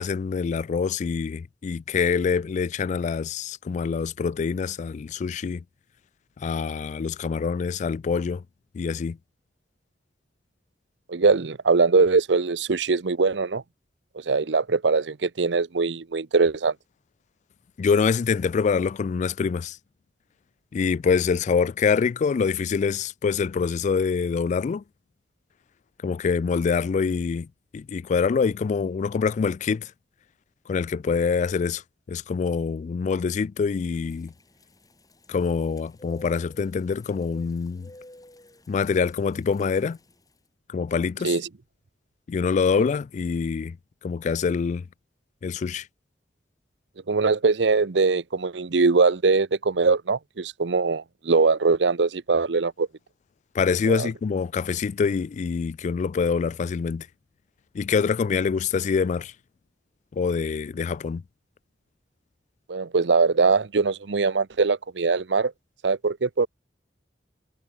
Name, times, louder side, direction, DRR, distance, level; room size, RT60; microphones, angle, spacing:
voice 1, 0.0-5.6 6.4-8.4 8.7-9.2 17.8-19.8 20.7-24.8 26.0-27.5 27.7-29.9 30.7-34.3 35.3-37.9 38.7-40.0 40.7-41.4 42.3-43.8 44.0-44.9 45.4-45.9 53.5-57.1 57.7-59.3 60.1-61.2, left 5 dB, 45° left, 0.3 m, -25 dB
voice 2, 11.1-13.6 14.3-16.7 41.2-41.4 47.1-52.9 53.9-54.1 62.7-65.5 65.8-66.5, right 4 dB, 80° right, 0.7 m, -22 dB
sound 1, 33.7-40.4, left 1 dB, 20° left, 7.2 m, -51 dB
head